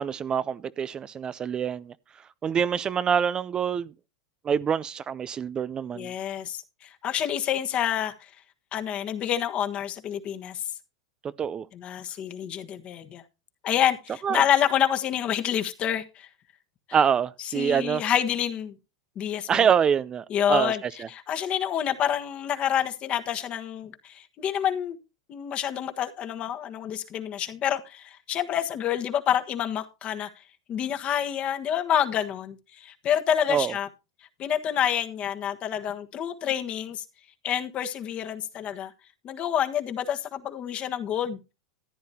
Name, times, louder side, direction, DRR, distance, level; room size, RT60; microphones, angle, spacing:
voice 1, 0.0-1.9 2.4-3.9 4.4-6.1 11.4-11.7 14.2-14.4 16.9-18.0 19.5-20.7 21.0-21.1 33.5-33.7, right 7 dB, 25° right, 0.5 m, -25 dB
voice 2, 5.9-8.3 8.7-10.6 11.7-13.2 13.6-16.3 17.5-18.8 19.1-19.7 20.3-20.8 21.1-25.0 25.3-30.3 30.7-33.9 34.4-37.0 37.4-38.9 39.2-41.4, left 10 dB, 40° left, 1.5 m, -28 dB
14.5 x 9.5 x 2.8 m
hypercardioid pair, 110°, 3 cm